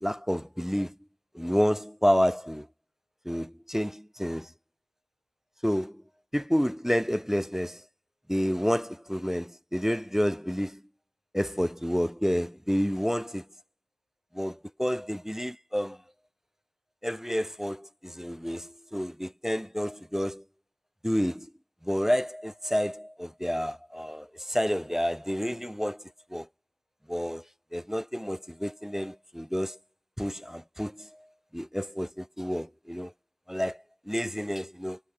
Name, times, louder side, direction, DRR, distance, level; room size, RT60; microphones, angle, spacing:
voice 1, 0.0-1.0 1.3-2.7 3.2-4.5 5.6-6.0 6.3-7.8 8.3-10.8 11.3-13.5 14.3-16.0 17.0-20.4 21.0-21.5 21.8-26.0 26.3-26.5 27.1-27.4 27.7-29.8 30.2-31.3 31.5-33.1 33.5-35.0, equal, ahead, 0.5 m, -29 dB
wide cardioid pair, 80°, 40 cm